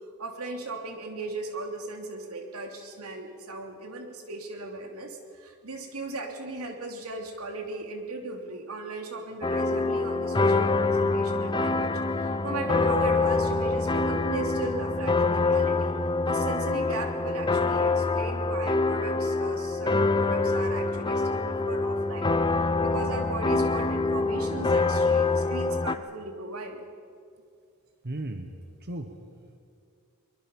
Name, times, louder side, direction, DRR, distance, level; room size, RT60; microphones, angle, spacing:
voice 1, 0.2-15.9 16.2-22.3 22.8-26.8, right 2 dB, 90° right, 3 dB, 3.0 m, -37 dB
sound 1, 9.4-26.0, left 3 dB, 20° left, 0.6 m, -25 dB
voice 2, 28.0-29.6, right 1 dB, 50° right, 6 dB, 1.3 m, -37 dB
23.0 x 22.5 x 5.5 m, 2.3 s
head